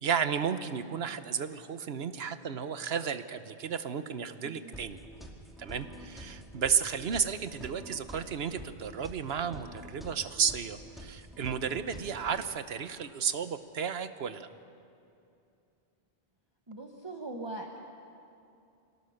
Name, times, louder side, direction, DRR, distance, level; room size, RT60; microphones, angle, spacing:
voice 1, 0.0-5.0 5.6-14.5, right 7 dB, 75° right, 11 dB, 1.2 m, -33 dB
voice 2, 4.4-4.7 16.7-17.8, right 2 dB, 25° right, 0 dB, 1.4 m, -41 dB
sound 1, 4.7-12.4, right 1 dB, ahead, 2.2 m, -47 dB
27.0 x 18.0 x 6.6 m, 2.6 s
omnidirectional pair, 1.0 m